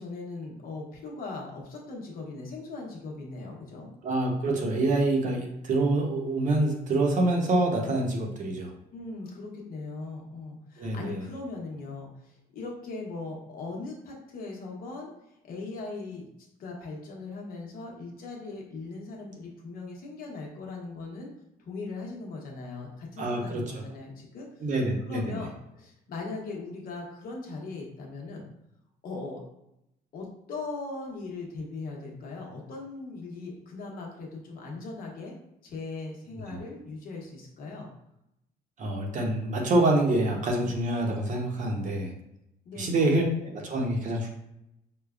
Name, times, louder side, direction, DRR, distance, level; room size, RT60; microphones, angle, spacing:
voice 1, 0.0-3.9 8.9-16.3 16.6-21.3 21.6-24.7 25.1-28.5 29.0-29.4 30.1-35.4 35.6-37.9 42.6-43.0, left 3 dB, 60° left, -1 dB, 1.0 m, -39 dB
voice 2, 4.0-8.7 10.8-11.2 23.2-23.6 24.6-25.2 36.5-36.6 38.8-42.1 42.8-44.3, right 2 dB, 50° right, 1 dB, 0.8 m, -26 dB
4.9 x 2.2 x 2.4 m, 0.83 s
cardioid pair, 110°, 17 cm